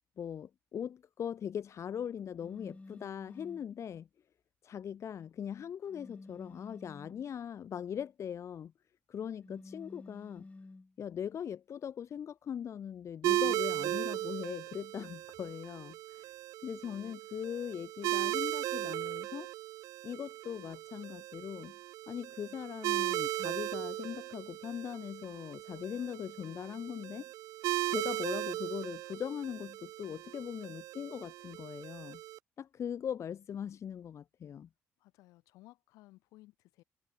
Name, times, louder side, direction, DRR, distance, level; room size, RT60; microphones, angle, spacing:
voice 1, 0.2-4.1 4.6-8.7 9.1-10.4 11.0-16.3 16.6-19.5 20.0-21.7 22.1-27.3 27.9-32.2 32.6-34.7, left 8 dB, 60° left, 1.3 m, -40 dB
sound 1, 2.4-3.7 5.9-7.3 9.4-10.9 13.4-14.1, left 3 dB, 20° left, 1.8 m, -52 dB
sound 2, 13.2-32.4, right 15 dB, 80° right, 0.6 m, -37 dB
voice 2, 35.0-36.8, left 18 dB, 85° left, 5.2 m, -58 dB
supercardioid pair, 60°, 6 cm